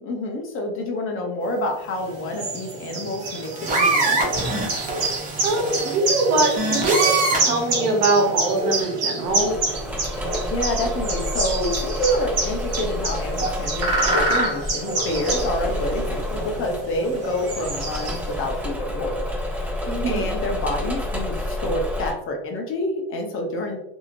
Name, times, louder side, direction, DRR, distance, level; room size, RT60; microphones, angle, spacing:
voice 1, 0.0-4.2 10.1-19.2 19.5-23.8, left 1 dB, 40° left, 3 dB, 0.7 m, -28 dB
sound 1, 2.0-18.5, right 2 dB, 50° right, 1.1 m, -27 dB
sound 2, 3.3-7.6 8.6-8.8, right 3 dB, 25° right, 0.8 m, -24 dB
voice 2, 5.4-9.5 19.9-20.3, right 2 dB, 75° right, 0 dB, 1.0 m, -22 dB
Engine / Mechanisms, 9.2-22.1, left 1 dB, 5° right, 1.2 m, -29 dB
2.8 x 2.7 x 2.5 m, 0.82 s
supercardioid pair, 125°, 33 cm